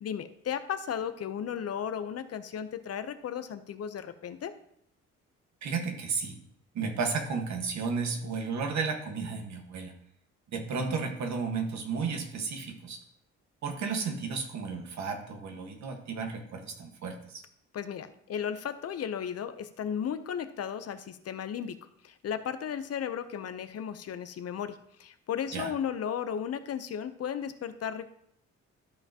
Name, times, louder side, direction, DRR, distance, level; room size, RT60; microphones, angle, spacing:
voice 1, 0.0-4.5 17.7-21.8 22.0-28.1, left 8 dB, 55° left, 10 dB, 0.7 m, -35 dB
voice 2, 5.6-6.4 6.7-9.9 10.5-13.0 13.6-17.4 25.5-25.7, right 5 dB, 65° right, 4 dB, 1.5 m, -33 dB
12.5 x 5.6 x 2.9 m, 0.70 s
cardioid pair, 90°, 30 cm